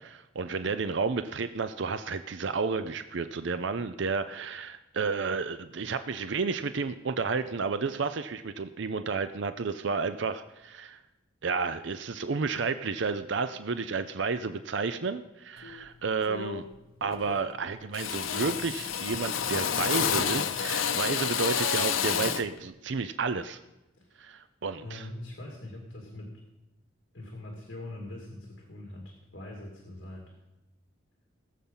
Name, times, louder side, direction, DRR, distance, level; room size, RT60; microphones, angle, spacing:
voice 1, 0.0-11.0 11.4-16.6 17.0-23.6 24.2-25.1, right 4 dB, 65° right, 11 dB, 0.5 m, -31 dB
Drill, 15.6-15.8 16.3-16.8 17.0-17.6 17.9-22.5, left 7 dB, 85° left, 0.7 m, -30 dB
voice 2, 24.8-26.3 27.1-30.4, left 1 dB, 55° left, 0 dB, 2.4 m, -43 dB
19.0 x 7.4 x 5.5 m, 0.98 s
head